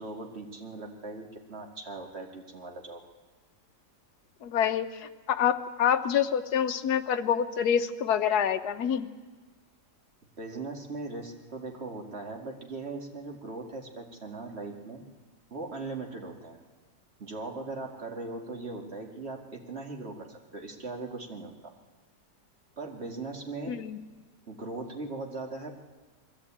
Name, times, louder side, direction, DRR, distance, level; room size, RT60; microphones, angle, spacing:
voice 1, 0.0-3.0 10.4-15.0 15.5-16.6 17.2-21.7 22.8-23.8 24.5-25.7, right 3 dB, 40° right, 2 dB, 2.3 m, -39 dB
voice 2, 4.4-9.1 23.7-24.0, left 8 dB, 65° left, 8 dB, 1.4 m, -27 dB
21.5 x 14.5 x 8.7 m, 1.3 s
omnidirectional pair, 1.8 m